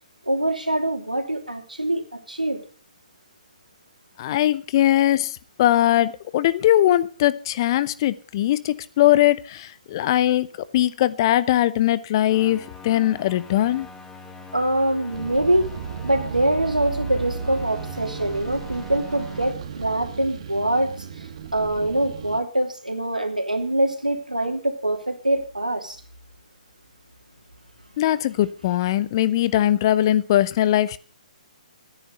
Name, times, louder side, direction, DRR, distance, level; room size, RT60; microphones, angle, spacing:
voice 1, 0.3-2.6 14.5-15.7 16.0-21.3 21.5-26.0, right 1 dB, 85° right, 2.8 m, -24 dB
voice 2, 4.2-10.5 10.7-13.9 28.0-31.0, left 13 dB, 35° left, 0.8 m, -20 dB
sound 1, 12.2-19.5, left 3 dB, 10° left, 2.3 m, -42 dB
sound 2, 15.1-22.4, right 6 dB, 45° right, 1.6 m, -35 dB
14.0 x 10.0 x 6.7 m
figure-of-eight pair, 130°, 4 cm